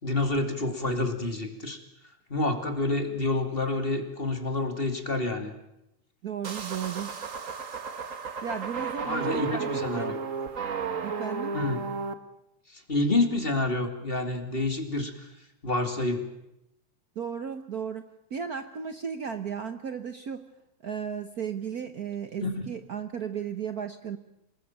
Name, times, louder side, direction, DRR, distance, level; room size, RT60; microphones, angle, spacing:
voice 1, 0.0-1.8 2.3-5.5 9.0-10.2 11.5-11.8 12.7-15.3 15.6-16.2 22.4-22.7, left 2 dB, 20° left, 7 dB, 2.6 m, -28 dB
voice 2, 6.2-7.1 8.4-10.1 11.0-11.5 17.2-20.4 20.8-24.2, right 7 dB, 80° right, 9 dB, 0.8 m, -35 dB
sound 1, 6.4-12.1, right 5 dB, 40° right, 1.2 m, -33 dB
26.5 x 20.5 x 8.9 m, 0.85 s
omnidirectional pair, 3.3 m